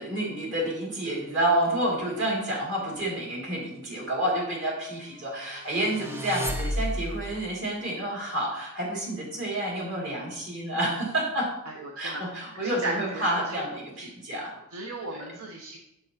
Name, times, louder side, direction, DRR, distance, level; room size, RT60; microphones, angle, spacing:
voice 1, 0.0-11.5 11.9-14.5 15.1-15.2, right 1 dB, 60° right, -4 dB, 2.6 m, -29 dB
sound 1, 5.6-7.4, equal, 10° right, 0.5 m, -31 dB
voice 2, 11.7-13.6 14.0-14.1 14.7-15.8, right 2 dB, 85° right, 2 dB, 0.7 m, -36 dB
6.6 x 6.5 x 2.8 m, 0.85 s
head